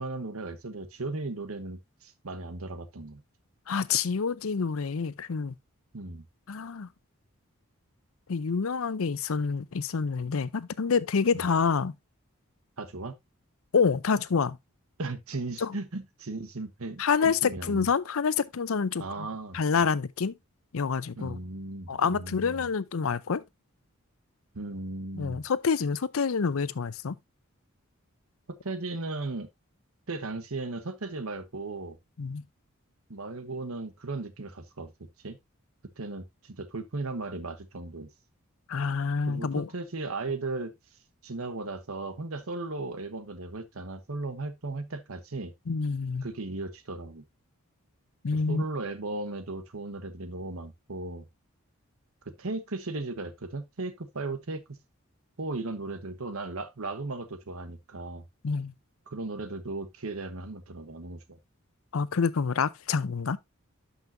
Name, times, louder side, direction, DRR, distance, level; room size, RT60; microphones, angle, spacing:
voice 1, 0.0-3.2 5.9-6.3 11.3-11.4 12.8-13.1 15.0-17.9 19.0-19.6 21.2-22.7 24.5-25.4 28.6-29.5 30.1-32.0 33.1-34.9 35.2-35.4 36.0-38.1 39.3-40.7 41.2-45.5 46.2-47.2 48.5-51.2 52.2-54.8 55.4-58.2 59.1-61.4, right 3 dB, 80° right, 1.2 m, -36 dB
voice 2, 3.7-5.5 6.5-6.9 8.3-11.9 13.7-14.6 15.6-15.7 17.0-19.3 19.5-20.3 20.7-21.4 21.9-23.4 25.2-27.2 32.2-32.4 38.7-39.7 45.7-46.3 48.2-48.7 58.4-58.7 61.9-63.4, left 5 dB, 75° left, 0.6 m, -27 dB
12.0 x 5.6 x 2.6 m
head